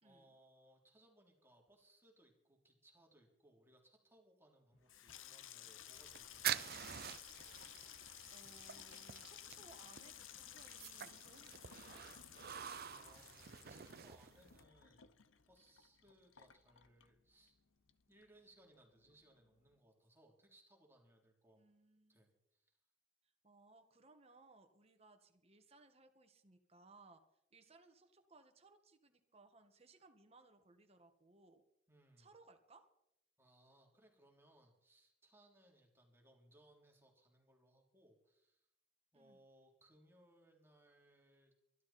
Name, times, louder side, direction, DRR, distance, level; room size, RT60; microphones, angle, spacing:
voice 1, 0.0-7.2 12.9-17.6 18.1-21.6 22.1-22.8 31.9-32.3 33.4-38.7 39.1-41.5, right 1 dB, 10° right, 0 dB, 3.5 m, -68 dB
Water tap faucet / Sink (filling or washing), 4.7-17.6 17.9-18.5 18.8-19.1, left 10 dB, 80° left, 0.9 m, -56 dB
sound 1, 6.0-14.6, right 10 dB, 50° right, 0.6 m, -47 dB
voice 2, 7.7-12.1 21.6-22.2 23.4-27.2 27.5-31.6 32.2-32.9 39.1-39.4, right 3 dB, 30° right, 6 dB, 1.8 m, -65 dB
23.5 x 12.5 x 4.4 m, 0.80 s
head